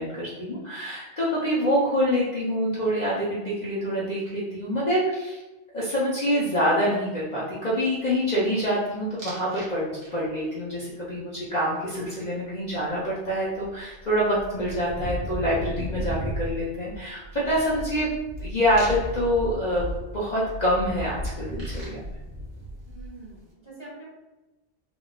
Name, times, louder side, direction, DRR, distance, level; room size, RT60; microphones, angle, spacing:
voice 1, 0.0-5.4 5.7-18.1 18.4-19.8 20.1-22.0, equal, 45° left, -7 dB, 0.7 m, -26 dB
sound 1, 9.2-9.7 10.0-10.5 12.9-13.0 13.3-23.3, equal, 45° right, 1.0 m, -35 dB
voice 2, 22.9-24.1, right 2 dB, 25° right, -7 dB, 1.1 m, -44 dB
3.6 x 2.4 x 2.3 m, 1.1 s
omnidirectional pair, 1.2 m